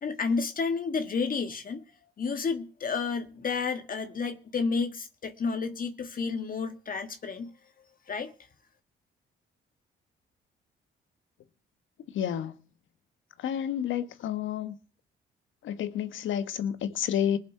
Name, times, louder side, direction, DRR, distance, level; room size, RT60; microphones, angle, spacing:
voice 1, 0.0-1.8 2.2-7.5 8.1-8.3, left 5 dB, 45° left, 1.6 m, -31 dB
voice 2, 12.1-12.5 13.4-14.7 15.6-17.4, left 9 dB, 75° left, 1.3 m, -30 dB
20.0 x 7.3 x 5.9 m
cardioid pair, 90°, 20 cm